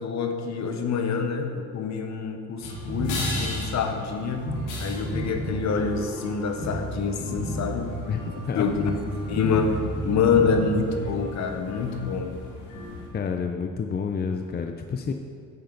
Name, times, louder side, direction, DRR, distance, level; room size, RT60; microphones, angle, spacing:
voice 1, 0.0-4.5 4.8-7.9 8.5-8.9 9.3-9.8 10.0-12.4, left 5 dB, 65° left, 5 dB, 1.1 m, -26 dB
sound 1, 2.6-13.1, equal, 90° left, 2.2 m, -33 dB
voice 2, 8.1-8.7 13.1-15.1, left 5 dB, 35° left, 5 dB, 0.6 m, -29 dB
9.1 x 8.8 x 4.0 m, 2.2 s
cardioid pair, 90°, 30 cm